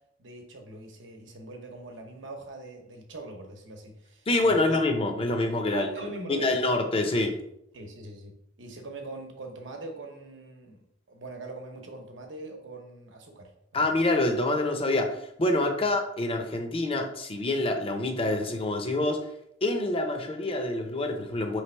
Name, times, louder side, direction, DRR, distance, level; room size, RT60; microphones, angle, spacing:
voice 1, 0.2-4.8 5.7-6.6 7.7-8.3 8.6-10.8 11.1-13.9, right 2 dB, 85° right, 2 dB, 0.9 m, -42 dB
voice 2, 4.3-5.9 6.3-7.3 13.7-19.2 19.6-21.6, left 2 dB, 30° left, 4 dB, 0.6 m, -26 dB
3.3 x 3.2 x 4.4 m, 0.76 s
head